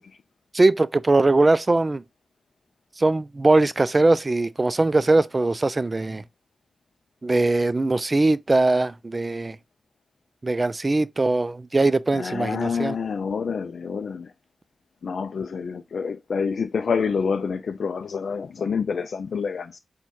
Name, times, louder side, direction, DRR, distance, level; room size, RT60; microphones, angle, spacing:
voice 1, 0.5-2.0 3.0-6.2 7.2-9.6 10.4-13.0, right 2 dB, 35° right, 0.3 m, -21 dB
voice 2, 12.1-14.3 15.0-19.8, left 5 dB, 85° left, 0.3 m, -27 dB
4.1 x 2.2 x 4.5 m
cardioid pair, 65°, 0 cm